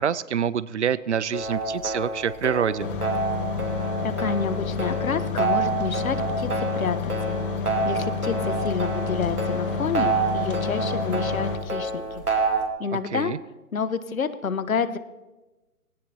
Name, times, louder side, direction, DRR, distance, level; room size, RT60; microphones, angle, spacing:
voice 1, 0.0-2.9 13.1-13.4, right 8 dB, 50° right, 18 dB, 0.6 m, -26 dB
sound 1, 1.3-12.7, right 3 dB, 85° right, 3.0 m, -28 dB
sound 2, 2.8-11.6, left 5 dB, 35° left, 1.5 m, -30 dB
voice 2, 4.0-7.0 7.3-7.4 7.8-12.2 12.8-13.3 13.7-15.0, left 6 dB, 65° left, 13 dB, 1.2 m, -29 dB
19.5 x 17.5 x 2.9 m, 1.1 s
figure-of-eight pair, 140°, 44 cm